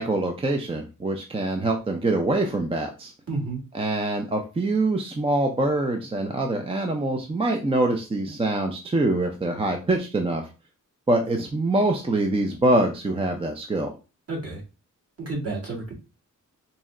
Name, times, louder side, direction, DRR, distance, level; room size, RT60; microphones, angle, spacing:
voice 1, 0.0-3.1 3.7-10.5 11.1-13.9, right 2 dB, 20° right, 3 dB, 0.4 m, -24 dB
voice 2, 3.3-3.6 14.3-14.6 15.2-15.9, right 3 dB, 45° right, -3 dB, 1.8 m, -30 dB
4.0 x 2.2 x 3.6 m, 0.32 s
wide cardioid pair, 120°, 33 cm